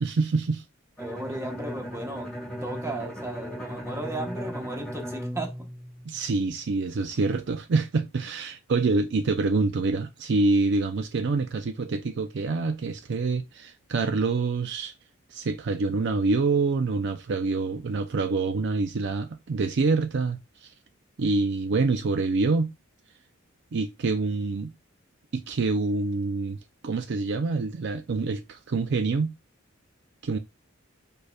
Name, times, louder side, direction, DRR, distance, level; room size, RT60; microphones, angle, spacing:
voice 1, 0.0-0.6 6.1-14.9 15.3-20.7 21.2-22.7 23.7-24.7 25.3-29.3 30.2-30.4, right 3 dB, 60° right, 0.5 m, -26 dB
Bowed string instrument, 1.0-6.6, equal, 5° left, 1.4 m, -37 dB
voice 2, 1.0-2.3 2.6-5.7, right 1 dB, 15° right, 1.1 m, -35 dB
4.9 x 4.5 x 2.3 m
head